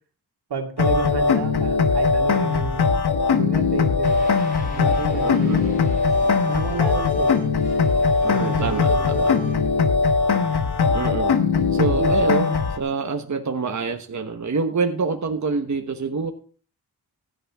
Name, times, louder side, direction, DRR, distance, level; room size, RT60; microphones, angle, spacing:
voice 1, 0.5-3.0 3.3-4.3 4.7-5.7 6.5-7.4 8.3-9.5 11.7-12.2, right 5 dB, 85° right, 3 dB, 2.3 m, -30 dB
sound 1, 0.8-12.8, left 5 dB, 80° left, 1.2 m, -20 dB
sound 2, 4.0-11.0, equal, 20° left, 6.0 m, -40 dB
voice 2, 5.2-5.7 8.2-9.3 10.9-11.4 11.7-16.3, right 4 dB, 45° right, 5 dB, 1.2 m, -26 dB
16.0 x 9.9 x 3.6 m, 0.41 s
cardioid pair, 70°, 39 cm